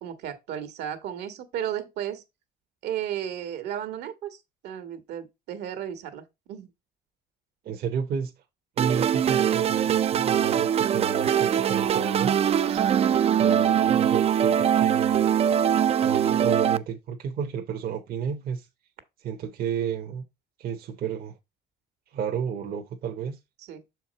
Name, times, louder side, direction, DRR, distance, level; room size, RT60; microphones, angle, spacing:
voice 1, 0.0-2.2 2.8-4.4 4.6-6.7 12.6-13.0 13.4-13.6 23.7-23.8, right 10 dB, 80° right, 1.5 m, -34 dB
voice 2, 7.6-8.3 8.8-12.3 13.4-15.3 16.0-18.7 19.2-20.2 20.6-21.4 22.1-23.4, right 7 dB, 60° right, 1.0 m, -31 dB
sound 1, 8.8-16.8, right 9 dB, 40° right, 0.4 m, -22 dB
6.6 x 4.6 x 4.1 m
cardioid pair, 110°, 17 cm